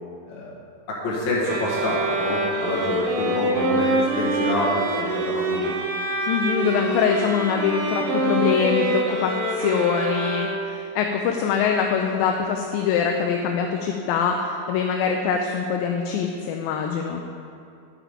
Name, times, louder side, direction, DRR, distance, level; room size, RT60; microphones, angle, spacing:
voice 1, 0.9-5.7, left 1 dB, 55° left, -6 dB, 2.7 m, -27 dB
sound 1, 1.4-10.9, right 2 dB, 70° right, 2.5 m, -25 dB
voice 2, 6.3-17.2, left 7 dB, 80° left, 3 dB, 2.3 m, -24 dB
10.5 x 8.6 x 5.0 m, 2.5 s
omnidirectional pair, 4.2 m